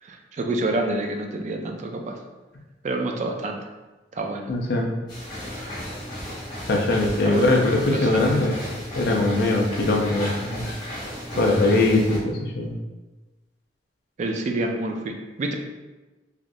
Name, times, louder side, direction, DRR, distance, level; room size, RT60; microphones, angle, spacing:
voice 1, 0.0-2.2 2.8-3.6 4.1-4.5 7.2-7.5 7.9-8.4 11.3-11.6 14.2-15.5, right 2 dB, 40° right, 3 dB, 0.3 m, -28 dB
voice 2, 4.5-4.9 6.7-8.6 8.9-10.7 11.4-12.7, left 2 dB, 65° left, 1 dB, 0.5 m, -21 dB
sound 1, 5.1-12.2, equal, 25° left, 1.3 m, -34 dB
3.4 x 2.5 x 2.6 m, 1.2 s
head